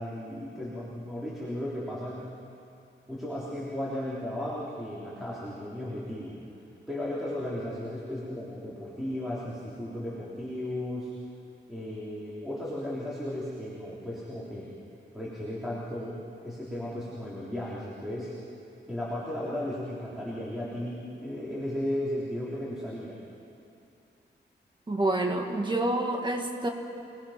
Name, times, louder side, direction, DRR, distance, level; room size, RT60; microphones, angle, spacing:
voice 1, 0.0-2.3 3.1-6.4 6.9-11.1 11.7-14.7 15.1-18.3 18.9-23.2, left 1 dB, ahead, -7 dB, 3.8 m, -35 dB
voice 2, 24.9-26.7, right 1 dB, 25° right, 3 dB, 2.0 m, -28 dB
27.5 x 20.5 x 6.0 m, 2.6 s
wide cardioid pair, 140°, 19 cm